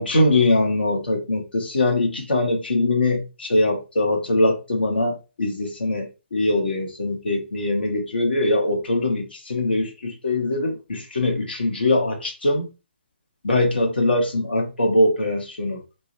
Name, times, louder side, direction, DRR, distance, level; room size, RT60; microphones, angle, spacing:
voice 1, 0.0-12.7 13.4-15.8, left 2 dB, 65° left, 0.9 m, -22 dB
2.6 x 2.1 x 2.5 m
figure-of-eight pair, 135°, 6 cm